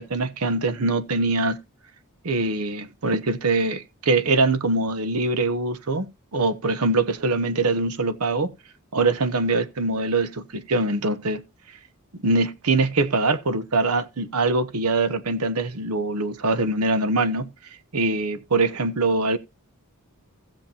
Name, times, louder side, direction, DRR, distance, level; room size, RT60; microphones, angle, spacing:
voice 1, 0.0-1.6 2.2-8.5 8.9-11.4 12.2-17.5 17.9-19.4, right 3 dB, 75° right, 0.9 m, -23 dB
16.0 x 7.0 x 2.9 m
head